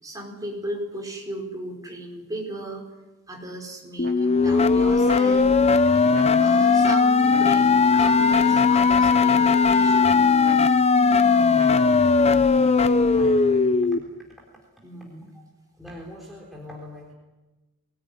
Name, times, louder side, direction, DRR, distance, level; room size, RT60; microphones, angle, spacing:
voice 1, 0.0-2.8 3.3-5.5 5.9-6.1 6.4-10.2 14.8-15.3, right 1 dB, 15° right, 0 dB, 5.2 m, -36 dB
sound 1, 4.0-14.0, left 4 dB, 30° left, 0.7 m, -18 dB
sound 2, 4.0-4.6 5.0-5.7 6.1-6.8 7.3-7.9 8.3-8.9 9.4-10.0 10.4-11.1 11.5-12.2, right 2 dB, 45° right, 3.3 m, -41 dB
voice 2, 12.2-14.1 15.3-15.4 15.7-17.1, equal, ahead, -2 dB, 3.8 m, -42 dB
23.5 x 19.5 x 9.7 m, 1.1 s
head